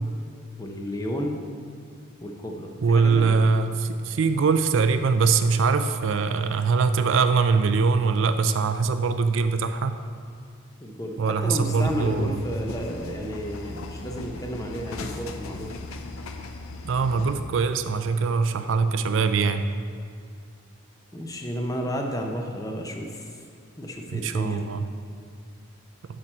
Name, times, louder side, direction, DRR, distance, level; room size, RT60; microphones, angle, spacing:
voice 1, 0.6-1.4 2.2-3.4 10.8-15.7 21.1-23.3 23.8-24.6, equal, 15° left, 2 dB, 0.6 m, -32 dB
voice 2, 2.8-10.0 11.2-12.4 16.9-19.7 24.1-24.9, right 5 dB, 65° right, 9 dB, 0.4 m, -22 dB
sound 1, 11.6-17.4, left 3 dB, 90° left, 0.6 m, -37 dB
7.9 x 6.2 x 4.3 m, 2.2 s
head